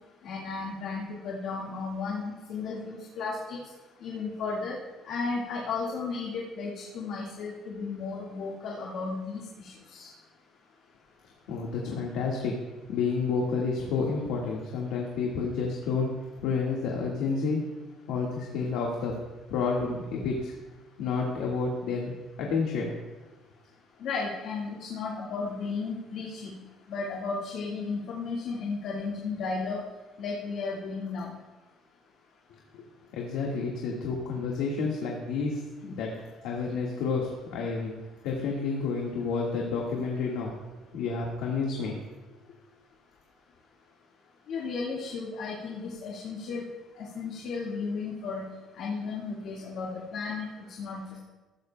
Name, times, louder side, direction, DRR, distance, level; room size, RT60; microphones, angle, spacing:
voice 1, 0.2-3.6 4.0-4.8 5.0-10.1 24.0-26.5 26.9-29.8 30.2-31.3 44.5-46.6 47.0-48.4 48.8-50.5 50.8-51.2, left 4 dB, 60° left, -3 dB, 1.7 m, -34 dB
voice 2, 11.5-12.6 12.9-17.6 18.1-19.1 19.5-20.5 21.0-22.9 32.7-36.1 36.4-37.9 38.2-40.5 40.9-42.0, left 4 dB, 80° left, -2 dB, 1.6 m, -30 dB
14.5 x 13.0 x 2.2 m, 1.2 s
cardioid pair, 165°, 0 cm